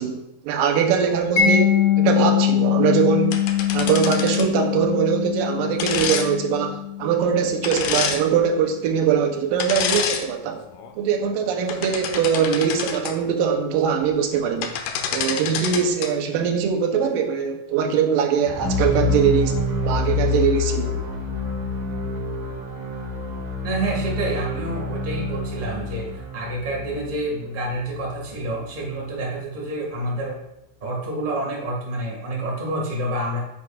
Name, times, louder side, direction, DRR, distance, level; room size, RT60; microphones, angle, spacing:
voice 1, 0.0-3.4 3.7-10.6 11.0-14.8 15.1-19.6 19.8-21.0, right 7 dB, 90° right, 4 dB, 2.6 m, -22 dB
Mallet percussion, 1.4-8.1, left 10 dB, 55° left, 2.2 m, -22 dB
sound 1, 3.3-4.6 5.8-6.3 7.6-8.2 9.6-10.2 10.7-10.9 11.5-13.1 14.3-14.4 14.6-16.1, left 7 dB, 90° left, 2.5 m, -27 dB
sound 2, 18.4-28.5, left 3 dB, 65° right, 3.2 m, -27 dB
voice 2, 23.6-30.3 30.8-33.4, right 1 dB, 20° right, -3 dB, 1.6 m, -28 dB
9.7 x 8.3 x 2.5 m, 0.86 s
omnidirectional pair, 3.8 m